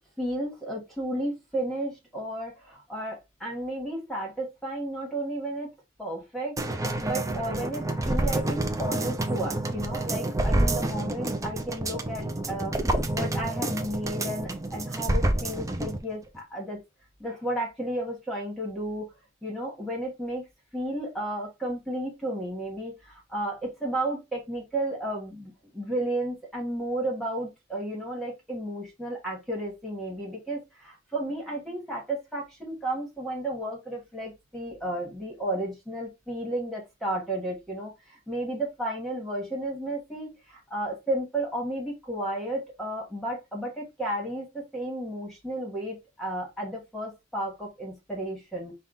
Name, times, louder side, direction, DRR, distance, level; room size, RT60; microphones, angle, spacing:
voice 1, 0.2-5.7 6.0-16.8 17.2-19.1 19.4-20.4 20.7-48.7, right 1 dB, ahead, 1.4 m, -33 dB
sound 1, 6.6-16.0 16.3-16.4, right 1 dB, 15° right, 0.5 m, -28 dB
5.5 x 2.3 x 3.8 m
head